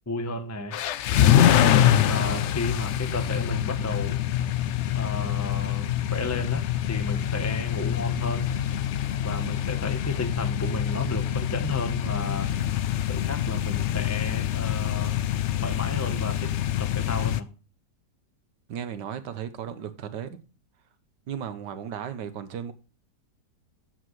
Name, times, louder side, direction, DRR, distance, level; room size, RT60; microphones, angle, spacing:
voice 1, 0.1-0.8 1.4-4.2 4.9-8.5 9.2-15.2 15.6-16.5 16.8-17.5, left 2 dB, 15° left, 0.6 m, -33 dB
sound 1, 0.7-17.4, left 11 dB, 80° left, 0.6 m, -25 dB
voice 2, 18.7-20.4 21.3-22.7, right 8 dB, 85° right, 1.6 m, -35 dB
11.5 x 8.3 x 3.2 m
omnidirectional pair, 1.8 m